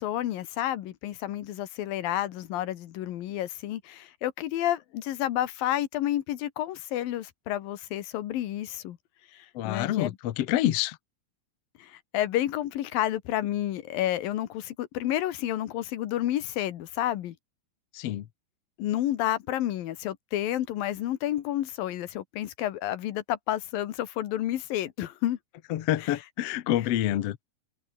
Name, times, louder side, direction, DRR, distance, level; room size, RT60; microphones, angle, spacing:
voice 1, 0.0-9.0 9.3-10.2 11.8-17.3 18.8-25.4 26.0-26.1, left 13 dB, 90° left, 3.1 m, -30 dB
voice 2, 9.5-11.0 17.9-18.2 25.7-27.4, left 13 dB, 65° left, 1.7 m, -27 dB
omnidirectional pair, 4.0 m